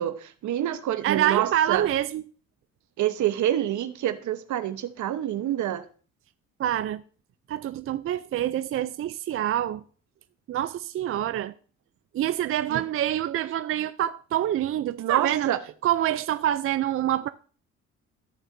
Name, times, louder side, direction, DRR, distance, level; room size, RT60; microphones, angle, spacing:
voice 1, 0.0-1.9 3.0-5.8 12.7-12.8 15.0-15.6, right 12 dB, 75° right, 0.9 m, -27 dB
voice 2, 1.0-2.2 6.6-7.0 7.5-9.8 10.5-11.5 12.1-15.5 15.8-17.3, right 12 dB, 45° right, 0.4 m, -26 dB
14.0 x 6.3 x 2.6 m
cardioid pair, 90°, 30 cm